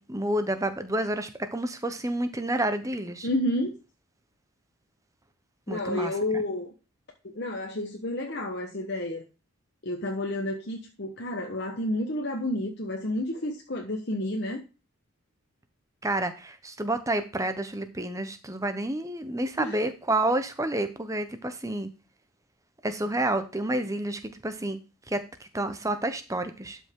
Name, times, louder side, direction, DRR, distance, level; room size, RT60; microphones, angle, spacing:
voice 1, 0.0-3.3 5.7-6.4 16.0-21.9 22.8-24.8 25.1-26.8, right 1 dB, 15° right, 9 dB, 0.9 m, -29 dB
voice 2, 3.2-3.8 5.7-6.7 7.3-9.2 9.8-14.6 19.6-19.8, left 1 dB, 50° left, 2 dB, 1.1 m, -30 dB
12.0 x 5.6 x 3.7 m, 0.31 s
head